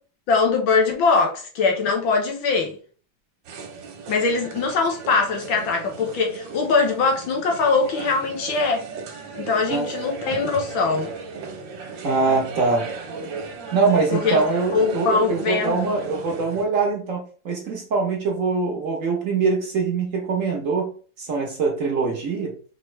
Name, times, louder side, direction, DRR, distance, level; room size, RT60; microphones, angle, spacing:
voice 1, 0.3-2.8 4.1-8.9 9.4-11.1 14.1-14.4 14.7-15.9, left 4 dB, 85° left, 1.9 m, -22 dB
sound 1, 3.4-16.6, right 5 dB, 75° right, 1.6 m, -36 dB
voice 2, 12.0-12.9 13.7-20.9 21.2-22.5, right 4 dB, 55° right, 1.0 m, -23 dB
5.1 x 2.9 x 3.2 m
omnidirectional pair, 2.1 m